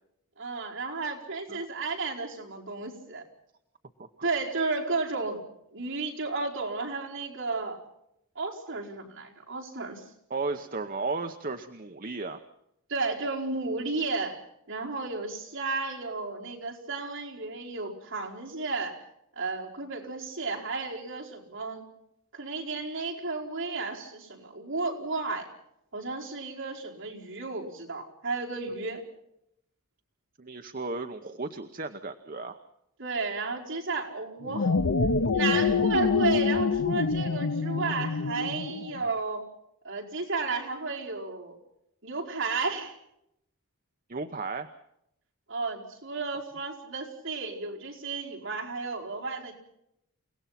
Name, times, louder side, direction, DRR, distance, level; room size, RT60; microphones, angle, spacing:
voice 1, 0.4-3.2 4.2-5.4 5.7-7.8 8.3-10.0 12.9-19.0 19.3-21.8 22.3-25.5 25.9-29.0 33.0-34.7 35.3-39.5 39.8-41.6 42.0-42.9 45.5-49.5, right 3 dB, 60° right, -2 dB, 5.0 m, -33 dB
voice 2, 10.3-12.4 30.4-32.6 44.1-44.7, right 3 dB, 40° right, 7 dB, 0.9 m, -34 dB
sound 1, 34.4-39.0, left 5 dB, 70° left, 0.8 m, -26 dB
29.5 x 18.0 x 5.9 m, 0.79 s
head